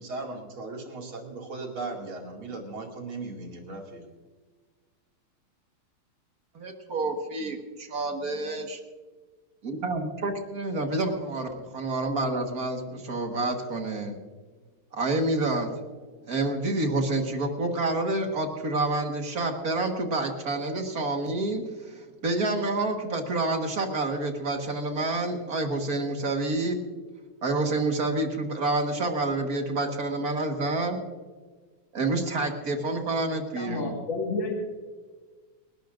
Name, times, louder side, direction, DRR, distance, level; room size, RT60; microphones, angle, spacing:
voice 1, 0.0-4.0, right 3 dB, 80° right, 0 dB, 3.3 m, -37 dB
voice 2, 6.5-8.8 9.6-14.2 14.9-15.7 16.3-26.8 27.4-31.0 31.9-33.9, right 2 dB, 45° right, 4 dB, 1.9 m, -28 dB
voice 3, 33.6-34.6, left 3 dB, 65° left, 0 dB, 2.6 m, -30 dB
29.5 x 12.0 x 2.6 m, 1.4 s
omnidirectional pair, 2.3 m